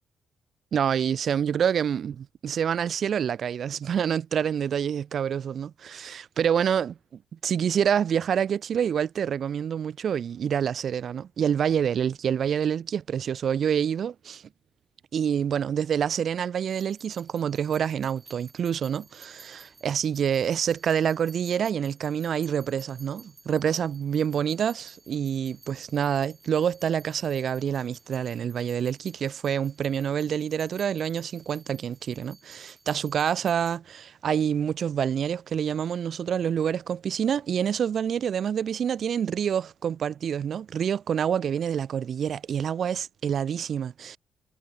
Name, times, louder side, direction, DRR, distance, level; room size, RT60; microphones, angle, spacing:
voice 1, 0.7-6.9 7.4-14.4 15.1-44.2, right 8 dB, 55° right, 0.7 m, -27 dB
sound 1, 16.7-33.8, right 3 dB, 30° right, 2.1 m, -55 dB
figure-of-eight pair, 40°, 0 cm